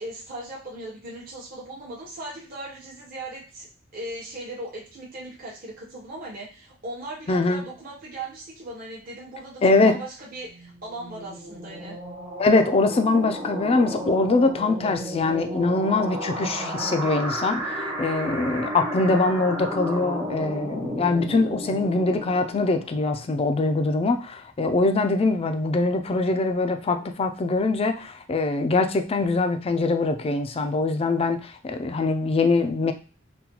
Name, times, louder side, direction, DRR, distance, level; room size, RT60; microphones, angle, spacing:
voice 1, 0.0-3.7 3.9-12.0, right 1 dB, 45° right, -4 dB, 0.9 m, -38 dB
voice 2, 7.3-7.6 9.6-10.0 12.4-32.9, left 3 dB, 30° left, 7 dB, 0.3 m, -23 dB
sound 1, 10.5-23.1, equal, 15° right, 0.7 m, -33 dB
3.9 x 2.2 x 2.8 m, 0.36 s
head